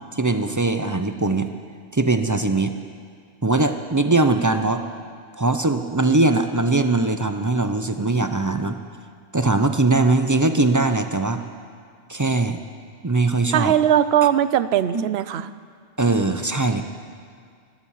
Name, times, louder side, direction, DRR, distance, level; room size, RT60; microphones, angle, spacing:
voice 1, 0.1-1.5 1.9-2.7 3.4-4.8 5.4-8.8 9.3-11.4 12.1-12.6 13.0-13.7 14.9-15.0 15.4-15.5 16.0-16.8, right 2 dB, 25° right, 7 dB, 0.4 m, -21 dB
voice 2, 13.5-15.5, right 10 dB, 65° right, 14 dB, 0.8 m, -19 dB
14.0 x 13.0 x 7.3 m, 2.1 s
omnidirectional pair, 1.2 m